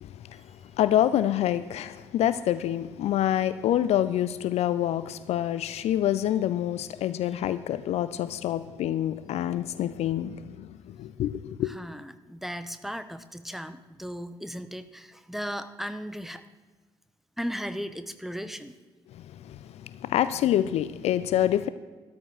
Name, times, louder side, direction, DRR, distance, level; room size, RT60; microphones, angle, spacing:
voice 1, 0.0-0.4 0.8-11.7 19.1-21.7, left 11 dB, 50° left, 0.4 m, -27 dB
voice 2, 11.6-16.4 17.4-18.7, equal, ahead, 0.7 m, -36 dB
13.0 x 12.5 x 3.2 m
figure-of-eight pair, 40°, 14 cm